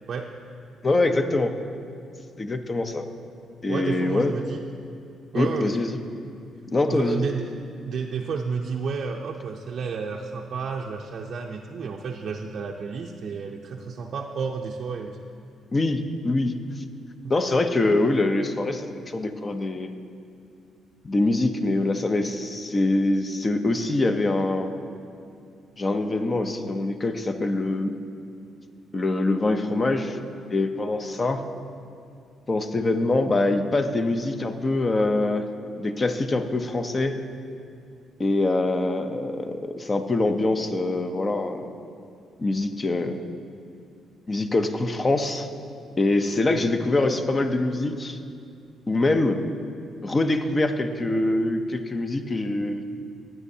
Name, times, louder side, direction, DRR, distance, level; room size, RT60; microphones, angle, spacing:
voice 1, 0.8-1.5 2.4-3.0 3.6-4.3 5.3-6.0 6.7-7.2 15.7-16.8 17.3-19.9 21.0-24.7 25.8-28.0 28.9-30.2 30.5-31.4 32.5-35.5 35.8-37.2 38.2-41.7 42.4-43.2 44.3-45.5 46.0-48.2 48.9-49.4 50.0-52.8, left 2 dB, 30° left, 8 dB, 0.6 m, -24 dB
voice 2, 3.7-4.6 5.3-6.0 6.9-7.5 7.9-15.3 17.2-17.3, right 5 dB, 60° right, 0 dB, 0.5 m, -31 dB
15.0 x 9.2 x 2.8 m, 2.5 s
cardioid pair, 90°, 0 cm